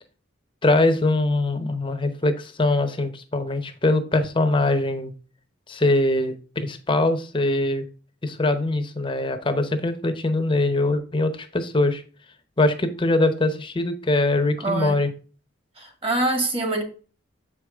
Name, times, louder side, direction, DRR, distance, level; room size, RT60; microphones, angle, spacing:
voice 1, 0.6-5.1 5.7-7.8 8.2-12.0 12.6-15.1, left 2 dB, 25° left, 0.8 m, -22 dB
voice 2, 14.6-15.0 15.8-16.8, right 2 dB, 30° right, 1.7 m, -25 dB
7.3 x 5.0 x 3.5 m
head